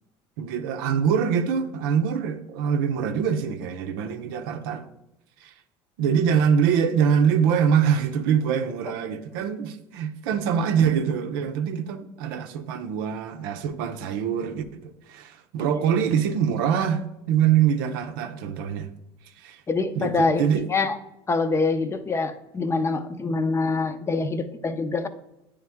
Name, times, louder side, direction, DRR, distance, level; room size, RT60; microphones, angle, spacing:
voice 1, 0.4-4.9 5.4-5.5 6.0-18.9 19.4-19.6 19.9-20.7, right 7 dB, 90° right, 0.6 m, -24 dB
voice 2, 19.7-21.0 21.3-25.1, left 3 dB, 25° left, 0.6 m, -25 dB
9.1 x 3.4 x 3.4 m
supercardioid pair, 100°, 11 cm